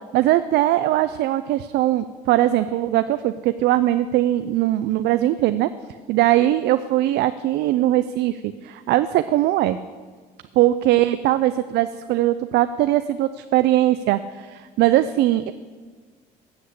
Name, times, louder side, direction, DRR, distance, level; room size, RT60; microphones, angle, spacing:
voice 1, 0.1-5.7 6.1-9.8 10.6-15.5, right 14 dB, 80° right, 12 dB, 0.4 m, -20 dB
8.1 x 7.9 x 8.4 m, 1.5 s
cardioid pair, 110°, 17 cm